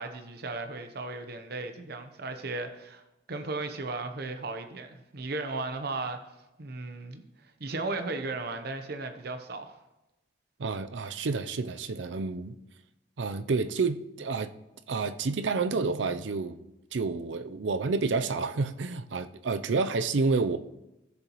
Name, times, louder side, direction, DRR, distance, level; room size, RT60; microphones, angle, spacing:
voice 1, 0.0-3.0 3.3-6.2 6.6-9.8, right 3 dB, 60° right, 7 dB, 0.9 m, -36 dB
voice 2, 10.6-12.5 13.2-14.5 14.9-16.6 16.9-20.6, right 4 dB, 80° right, 11 dB, 0.5 m, -29 dB
15.5 x 6.9 x 3.0 m, 0.96 s
head